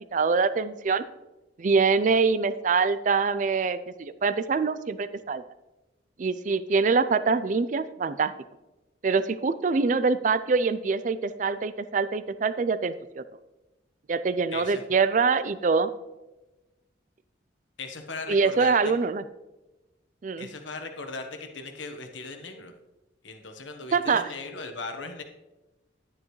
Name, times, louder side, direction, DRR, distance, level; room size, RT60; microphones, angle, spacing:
voice 1, 0.1-1.0 1.6-5.4 6.2-8.3 9.0-13.2 14.1-15.9 18.3-19.2 20.2-20.5 23.9-24.3, right 4 dB, 45° right, 13 dB, 0.4 m, -24 dB
voice 2, 14.5-14.8 17.8-18.9 20.4-22.7 23.2-25.2, left 3 dB, 85° left, 6 dB, 1.1 m, -38 dB
9.9 x 9.7 x 3.1 m, 1.0 s
head